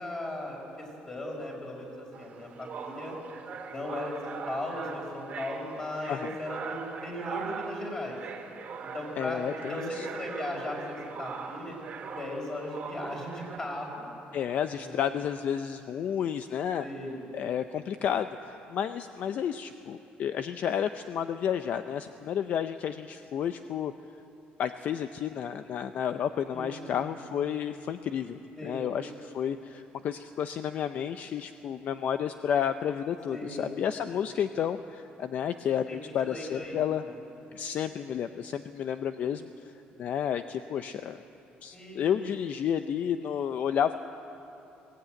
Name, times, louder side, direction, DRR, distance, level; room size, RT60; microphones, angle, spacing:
voice 1, 0.0-3.1 3.7-8.2 8.9-11.7 12.1-14.1 14.7-15.0 16.8-17.2 26.5-26.9 28.6-28.8 33.3-33.7 35.9-36.0 36.2-37.2 41.7-42.2, left 1 dB, 20° left, -1 dB, 5.1 m, -37 dB
sound 1, 2.1-13.6, right 5 dB, 45° right, 1.8 m, -41 dB
voice 2, 9.2-10.1 14.3-16.9 17.3-23.9 24.6-37.0 37.5-39.5 40.0-41.2 41.6-43.9, left 9 dB, 50° left, 10 dB, 0.5 m, -31 dB
21.5 x 17.0 x 9.1 m, 2.9 s
cardioid pair, 160°, 3 cm